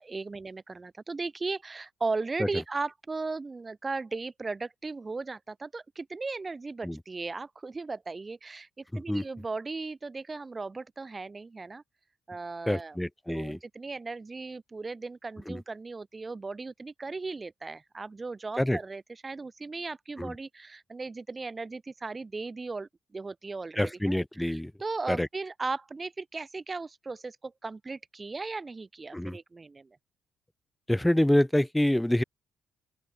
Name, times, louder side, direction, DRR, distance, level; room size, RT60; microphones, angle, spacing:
voice 1, 0.0-11.8 12.3-13.0 13.3-23.9 24.2-29.9, right 3 dB, 25° right, 4.3 m, -37 dB
voice 2, 8.9-9.2 12.7-13.6 15.5-15.6 18.6-18.8 20.2-20.3 23.8-24.7 25.1-25.3 29.1-29.4 30.9-32.2, left 1 dB, 5° left, 4.7 m, -26 dB
open air
cardioid pair, 90°, 0 cm